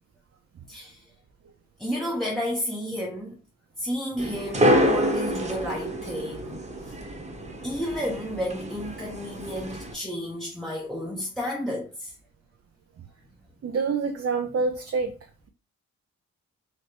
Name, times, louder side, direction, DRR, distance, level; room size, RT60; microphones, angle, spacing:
voice 1, 0.7-1.0 1.8-3.4 3.8-7.0 7.6-12.1, equal, ahead, 0.9 m, -31 dB
sound 1, 4.2-9.9, equal, 20° right, 1.2 m, -27 dB
voice 2, 13.6-15.1, right 4 dB, 45° right, 0.6 m, -26 dB
4.2 x 3.0 x 3.3 m
cardioid pair, 75°, 35 cm